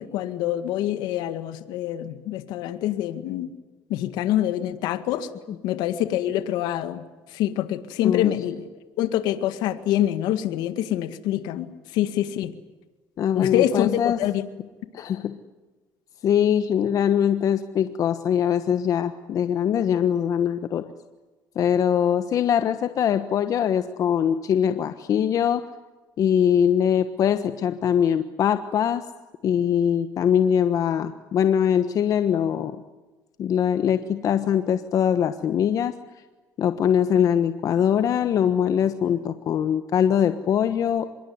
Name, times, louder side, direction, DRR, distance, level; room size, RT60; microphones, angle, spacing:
voice 1, 0.0-3.5 3.9-5.3 5.6-7.0 7.3-8.7 9.0-12.5 13.4-14.4, left 12 dB, 75° left, 10 dB, 1.9 m, -25 dB
voice 2, 8.0-8.3 13.2-14.2 14.9-15.3 16.2-20.8 21.5-25.6 26.2-29.0 29.4-32.8 33.4-35.9 36.6-41.1, left 9 dB, 50° left, 9 dB, 1.3 m, -22 dB
25.5 x 22.5 x 9.6 m, 1.2 s
cardioid pair, 105°, 7 cm